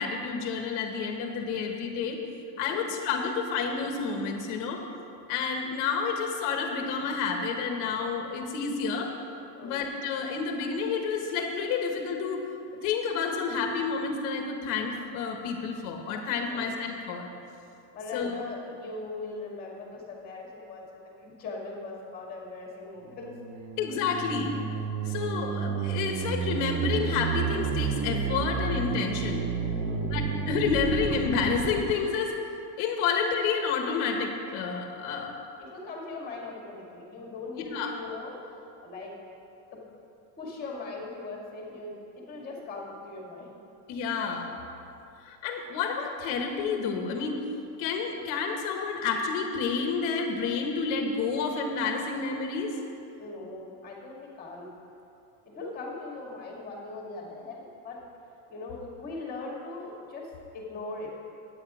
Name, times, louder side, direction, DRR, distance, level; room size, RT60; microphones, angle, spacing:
voice 1, 0.0-2.2 2.6-4.8 5.3-9.1 9.6-12.5 12.8-17.3 18.1-18.3 23.8-24.5 25.0-29.4 30.1-32.3 32.8-35.4 37.6-37.9 43.9-44.5 45.2-47.4 47.8-52.7, left 5 dB, 50° left, 3 dB, 1.4 m, -29 dB
voice 2, 17.9-23.3 29.8-30.1 35.6-38.3 38.8-39.1 40.4-43.6 53.2-54.7 55.5-58.0 58.5-61.1, left 3 dB, 25° left, -2 dB, 2.1 m, -40 dB
sound 1, 23.1-31.9, right 6 dB, 30° right, 0.7 m, -31 dB
9.9 x 8.8 x 4.9 m, 2.7 s
cardioid pair, 165°, 38 cm